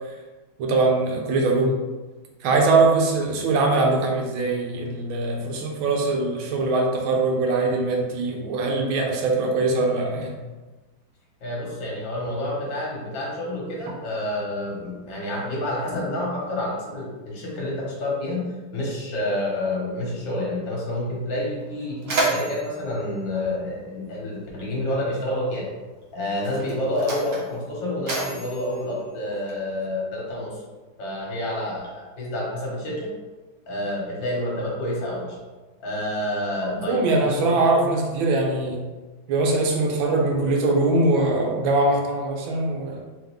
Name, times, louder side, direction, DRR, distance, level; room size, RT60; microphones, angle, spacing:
voice 1, 0.6-1.8 2.4-10.4 36.7-38.8 39.3-43.0, right 3 dB, 80° right, 1 dB, 1.5 m, -22 dB
voice 2, 11.4-18.4 18.7-25.7 26.1-30.6 31.0-33.1 33.7-35.4 35.8-37.5, left 1 dB, 70° left, -4 dB, 2.1 m, -28 dB
Mechanisms, 21.1-21.2 21.6-24.3 25.3-25.5 26.3-29.9, right 2 dB, 50° right, 1.2 m, -31 dB
3.9 x 3.5 x 3.4 m, 1.2 s
omnidirectional pair, 2.2 m